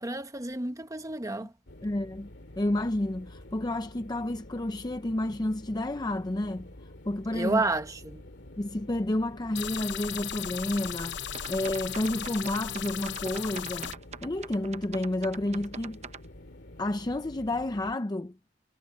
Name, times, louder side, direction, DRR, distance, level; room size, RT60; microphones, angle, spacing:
voice 1, 0.0-1.5 7.3-8.2, right 2 dB, 20° right, 1.3 m, -30 dB
sound 1, 1.7-17.9, left 1 dB, 70° left, 2.5 m, -49 dB
voice 2, 1.8-2.3 2.6-6.7 7.1-7.6 8.6-11.2 11.5-16.0 16.8-18.4, left 1 dB, 25° left, 0.6 m, -30 dB
sound 2, 9.6-13.9, left 9 dB, 85° left, 0.8 m, -36 dB
sound 3, 11.3-16.3, right 6 dB, 40° right, 0.7 m, -43 dB
head